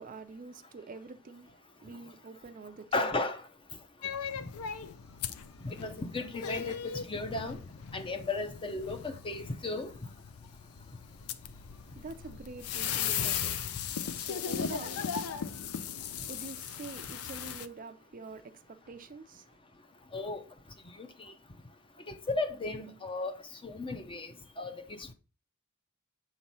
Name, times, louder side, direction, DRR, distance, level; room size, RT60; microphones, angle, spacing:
voice 1, 0.0-3.3 11.6-19.6, right 4 dB, 40° right, 0.5 m, -47 dB
voice 2, 2.9-3.4 5.6-7.6 7.9-9.9 20.1-20.4 21.0-21.3 22.1-23.3 23.6-25.1, left 3 dB, 25° left, 0.6 m, -35 dB
sound 1, 4.0-17.7, left 7 dB, 70° left, 0.5 m, -37 dB
7.3 x 3.0 x 5.4 m
head